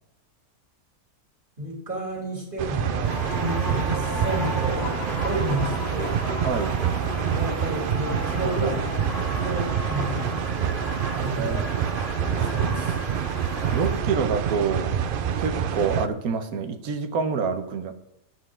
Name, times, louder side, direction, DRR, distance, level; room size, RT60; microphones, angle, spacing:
voice 1, 1.6-4.9 5.2-6.1 7.3-9.0 9.4-10.6 11.1-11.7 12.4-12.9, right 1 dB, 35° right, -1 dB, 2.9 m, -31 dB
sound 1, 2.6-16.1, right 8 dB, 65° right, 0.5 m, -27 dB
sound 2, 3.0-14.0, left 1 dB, 45° left, 1.8 m, -34 dB
voice 2, 6.4-6.8 11.4-11.6 13.7-15.0 15.4-17.9, right 5 dB, 85° right, 8 dB, 1.4 m, -27 dB
11.5 x 8.0 x 3.6 m, 0.83 s
omnidirectional pair, 1.5 m